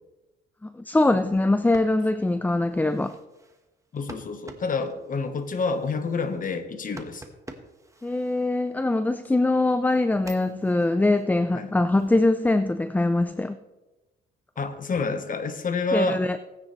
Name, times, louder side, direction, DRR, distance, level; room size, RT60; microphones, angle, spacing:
voice 1, 0.6-3.2 8.0-13.6 15.9-16.4, left 2 dB, 10° left, 12 dB, 0.4 m, -23 dB
sound 1, 1.5-9.1 9.6-12.3, right 2 dB, 15° right, 1.3 m, -49 dB
voice 2, 3.9-7.2 11.5-11.7 14.6-16.3, left 3 dB, 45° left, 9 dB, 1.2 m, -28 dB
17.0 x 9.4 x 3.2 m, 1.1 s
cardioid pair, 90°, 20 cm